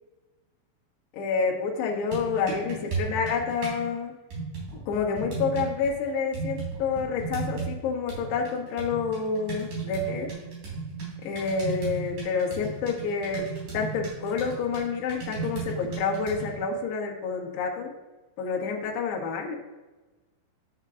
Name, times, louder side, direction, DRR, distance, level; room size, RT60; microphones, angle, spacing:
voice 1, 1.1-4.1 4.7-10.3 11.2-17.9 18.4-19.6, left 5 dB, 70° left, -2 dB, 3.1 m, -28 dB
sound 1, 1.9-3.8 4.3-5.9 6.3-7.8 8.1-16.6, right 5 dB, 45° right, 4.2 m, -35 dB
12.0 x 8.1 x 2.5 m, 1.2 s
omnidirectional pair, 5.7 m